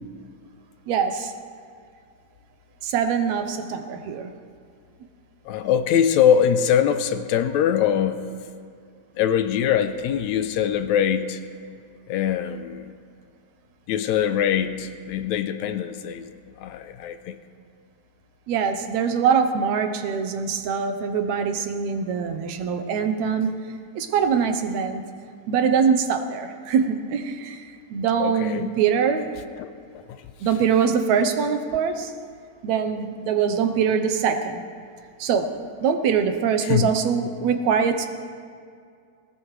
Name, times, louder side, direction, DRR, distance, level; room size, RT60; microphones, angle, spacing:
voice 1, 0.9-1.3 2.8-4.3 18.5-25.0 25.5-29.3 30.4-32.1 32.6-34.6 35.2-35.5 35.8-38.1, right 6 dB, 75° right, 7 dB, 2.1 m, -23 dB
voice 2, 5.5-8.3 9.2-11.4 12.1-12.9 13.9-16.3 16.6-17.4 28.2-28.7 29.6-29.7 36.7-36.9, left 9 dB, 80° left, 10 dB, 1.9 m, -22 dB
20.5 x 18.5 x 3.2 m, 2.2 s
omnidirectional pair, 3.4 m